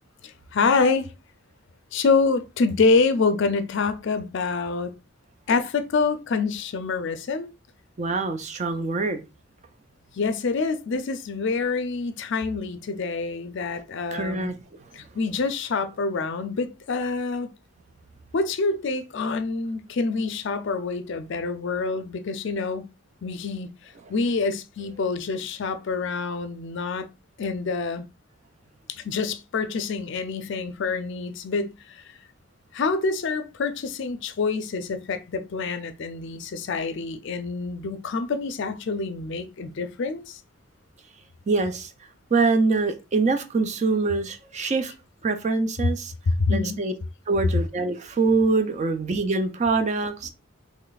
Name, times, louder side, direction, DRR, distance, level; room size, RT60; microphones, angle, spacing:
voice 1, 0.2-1.1 1.9-4.9 5.5-7.5 10.2-14.5 14.9-17.5 18.3-22.9 23.2-23.7 24.1-27.1 27.4-28.0 28.9-32.0 32.7-40.4 45.8-45.9 46.3-46.8, left 4 dB, 55° left, 0.4 m, -26 dB
voice 2, 8.0-9.2 14.1-14.5 41.5-41.9 42.3-44.9 45.2-46.1 46.5-46.9 47.3-50.3, right 3 dB, 35° right, 0.4 m, -24 dB
3.1 x 2.3 x 3.9 m
head